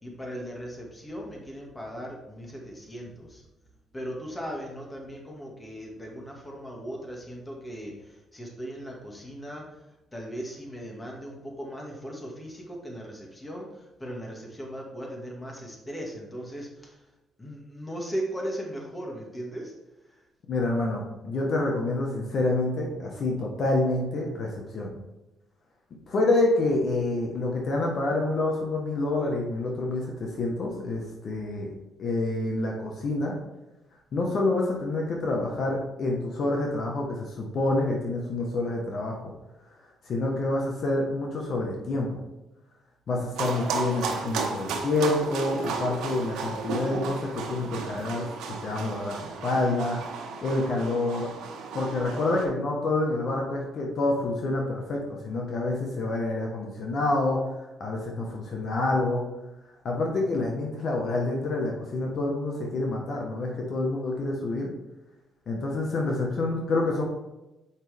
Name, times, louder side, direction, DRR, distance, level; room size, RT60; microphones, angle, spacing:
voice 1, 0.0-3.4 3.9-17.1 17.4-19.7 20.0-20.2, equal, 20° left, -1 dB, 2.2 m, -38 dB
voice 2, 20.5-25.0 26.1-31.7 32.0-33.4 34.1-39.3 40.0-42.2 43.1-50.0 50.4-51.3 51.7-57.4 57.8-59.3 59.8-64.7 65.5-67.0, left 2 dB, 55° left, 0 dB, 1.5 m, -27 dB
sound 1, 43.4-52.5, right 5 dB, 85° right, 1.2 m, -34 dB
7.3 x 5.6 x 3.6 m, 0.98 s
cardioid pair, 90°, 0 cm